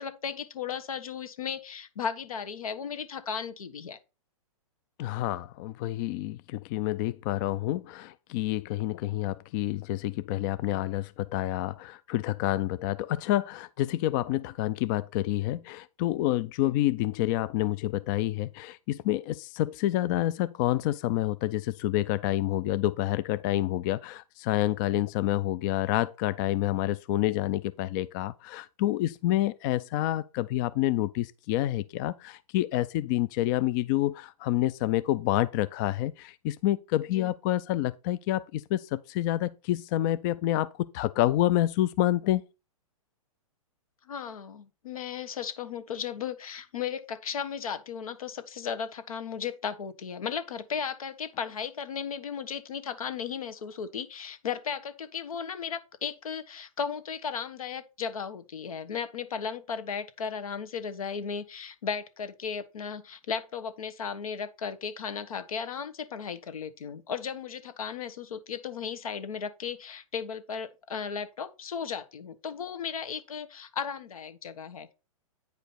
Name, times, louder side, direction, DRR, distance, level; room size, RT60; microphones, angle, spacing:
voice 1, 0.0-4.0 16.6-16.8 37.1-37.3 44.0-74.9, left 7 dB, 80° left, 1.3 m, -35 dB
voice 2, 5.0-42.4, left 14 dB, 35° left, 0.3 m, -28 dB
9.2 x 5.0 x 4.1 m
hypercardioid pair, 135°, 18 cm